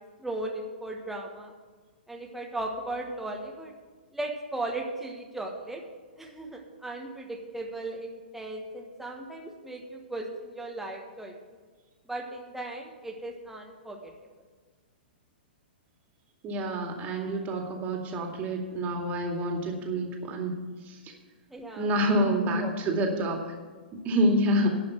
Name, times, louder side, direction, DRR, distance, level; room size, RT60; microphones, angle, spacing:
voice 1, 0.0-1.5 2.1-3.7 4.1-5.8 6.2-11.3 12.1-14.1 19.9-20.0 21.5-22.3 22.6-22.7, right 2 dB, 5° right, 1 dB, 1.3 m, -37 dB
voice 2, 16.4-20.5 20.9-21.1 21.8-23.4 23.9-24.7, equal, 30° right, 2 dB, 2.3 m, -27 dB
11.5 x 5.7 x 8.8 m, 1.5 s
hypercardioid pair, 115°, 6 cm